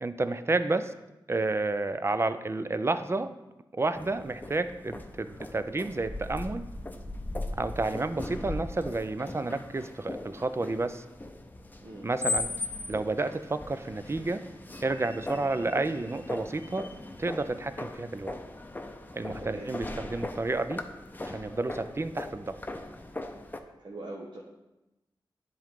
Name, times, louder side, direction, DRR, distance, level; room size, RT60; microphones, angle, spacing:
voice 1, 0.0-0.9 1.3-3.3 3.7-6.6 7.6-11.0 12.0-12.5 12.9-14.4 14.8-16.9 17.2-18.3 19.1-20.8 21.2-22.6, right 2 dB, 30° right, 11 dB, 0.4 m, -30 dB
sound 1, 3.9-23.6, left 2 dB, 20° left, 0.6 m, -39 dB
voice 2, 19.4-19.7 23.8-24.4, right 2 dB, 60° right, -3 dB, 0.9 m, -41 dB
10.0 x 3.8 x 3.6 m, 0.99 s
cardioid pair, 60°, 9 cm